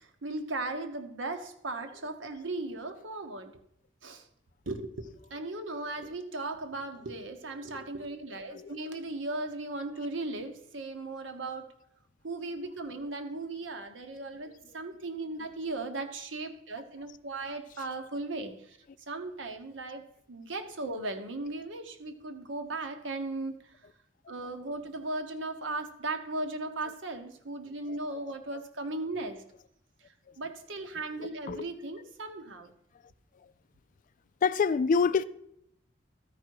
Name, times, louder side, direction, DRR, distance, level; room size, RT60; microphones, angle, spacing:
voice 1, 0.0-3.6 4.0-4.3 4.7-4.9 5.3-11.7 12.2-18.8 19.1-23.8 24.3-29.4 30.4-32.7, right 2 dB, 80° right, 1.1 m, -37 dB
voice 2, 8.3-8.9 15.4-15.5 17.5-17.9 26.9-27.0 27.8-28.2 28.5-28.6 31.2-31.7 34.4-35.2, left 5 dB, 45° left, 0.3 m, -29 dB
13.0 x 5.0 x 4.7 m
head